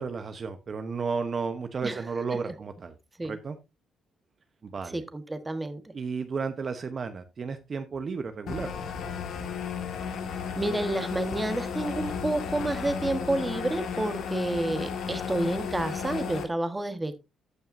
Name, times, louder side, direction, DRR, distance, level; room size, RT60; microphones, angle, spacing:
voice 1, 0.0-2.9 3.2-3.6 4.6-5.0 5.9-8.7, right 5 dB, 45° right, 8 dB, 0.9 m, -33 dB
voice 2, 4.9-5.8 10.5-17.2, right 2 dB, 15° right, 9 dB, 1.3 m, -30 dB
sound 1, 8.5-16.4, left 6 dB, 75° left, 1.7 m, -34 dB
14.5 x 5.5 x 2.6 m, 0.24 s
cardioid pair, 90°, 0 cm